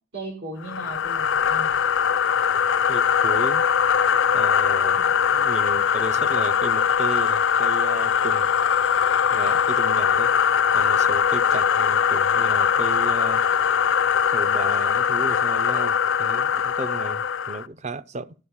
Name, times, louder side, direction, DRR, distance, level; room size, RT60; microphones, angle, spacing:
voice 1, 0.1-1.7 5.0-5.5, right 2 dB, 90° right, 3.8 m, -37 dB
sound 1, 0.6-17.7, left 7 dB, 85° left, 0.5 m, -21 dB
voice 2, 2.9-3.6 4.3-5.0 5.4-8.5 9.3-10.3 10.7-13.4 14.3-18.3, right 3 dB, 40° right, 0.5 m, -34 dB
12.5 x 4.6 x 8.6 m
head